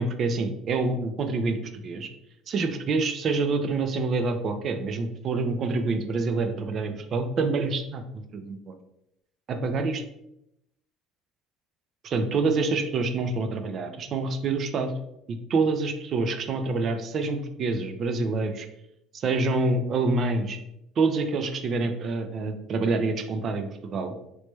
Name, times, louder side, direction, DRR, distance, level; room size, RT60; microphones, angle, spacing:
voice 1, 0.0-1.6 1.8-2.1 2.5-8.7 9.5-10.0 12.0-14.9 15.3-18.7 19.1-20.6 21.0-24.2, right 3 dB, 45° right, 8 dB, 0.5 m, -27 dB
3.2 x 3.1 x 3.2 m, 0.82 s
cardioid pair, 120°, 0 cm